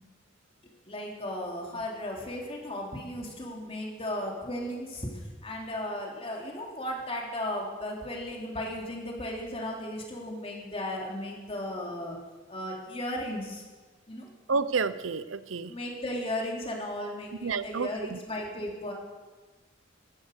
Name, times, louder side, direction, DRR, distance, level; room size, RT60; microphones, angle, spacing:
voice 1, 0.6-12.2 12.5-13.6 14.1-14.3 15.7-18.9, left 1 dB, 30° left, -1 dB, 3.3 m, -35 dB
voice 2, 14.5-15.7 17.4-18.2, right 4 dB, 85° right, 14 dB, 0.8 m, -30 dB
15.5 x 13.0 x 6.7 m, 1.3 s
head